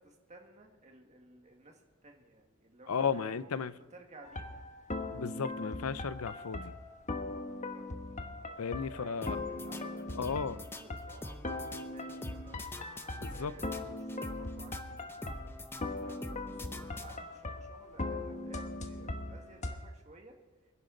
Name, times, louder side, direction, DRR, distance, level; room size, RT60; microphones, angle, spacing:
voice 1, 0.0-3.5 3.9-4.6 7.3-8.0 8.4-12.6 13.3-13.7 14.0-15.5 15.8-20.4, right 2 dB, 35° right, 1.8 m, -56 dB
voice 2, 2.9-3.7 5.1-6.7 8.6-9.4 10.1-10.6 13.1-13.5, left 6 dB, 80° left, 0.6 m, -34 dB
sound 1, 4.2-19.8, left 2 dB, 35° left, 1.2 m, -40 dB
sound 2, 9.2-17.5, left 1 dB, 10° left, 0.7 m, -46 dB
25.5 x 10.5 x 3.9 m
head